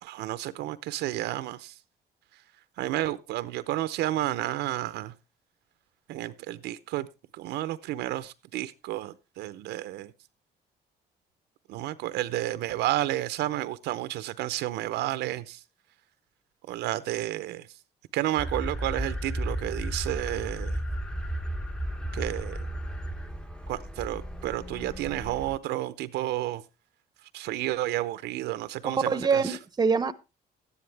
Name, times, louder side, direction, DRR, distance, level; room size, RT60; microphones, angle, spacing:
voice 1, 0.0-1.7 2.8-5.1 6.1-7.1 7.3-10.1 11.7-15.6 16.7-17.7 18.1-20.8 22.1-22.6 23.7-26.6 27.3-29.6, right 15 dB, 80° right, 0.8 m, -31 dB
sound 1, 18.4-25.6, right 1 dB, 5° left, 0.9 m, -34 dB
voice 2, 28.8-30.1, right 5 dB, 25° right, 0.8 m, -25 dB
13.0 x 10.0 x 3.4 m
cardioid pair, 110°, 17 cm